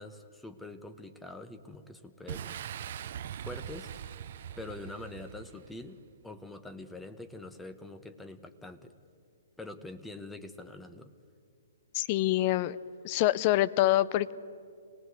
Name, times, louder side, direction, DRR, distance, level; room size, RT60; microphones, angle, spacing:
voice 1, 0.0-2.6 3.4-4.2 4.6-6.0 6.2-8.9 9.6-11.1, left 2 dB, 5° left, 9 dB, 1.1 m, -45 dB
Boom, 2.3-5.9, right 9 dB, 55° right, 0.8 m, -41 dB
voice 2, 11.9-12.8 13.0-14.3, left 15 dB, 35° left, 18 dB, 0.7 m, -25 dB
26.0 x 19.5 x 8.2 m, 2.3 s
hypercardioid pair, 140°, 0 cm